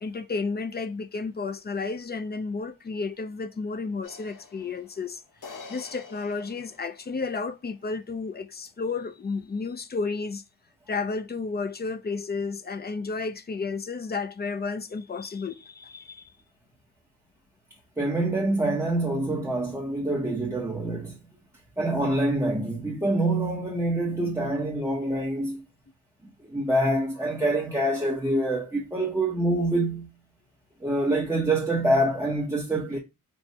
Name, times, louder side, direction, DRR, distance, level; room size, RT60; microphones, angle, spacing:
voice 1, 0.0-10.4 10.9-16.3, left 4 dB, 30° left, 0.4 m, -32 dB
sound 1, 4.0-7.4, left 4 dB, 60° left, 0.8 m, -47 dB
voice 2, 18.0-21.2 21.8-25.6 26.4-30.1 30.8-33.0, right 1 dB, 10° right, 0.6 m, -26 dB
4.3 x 2.0 x 4.4 m
wide cardioid pair, 170°, 35 cm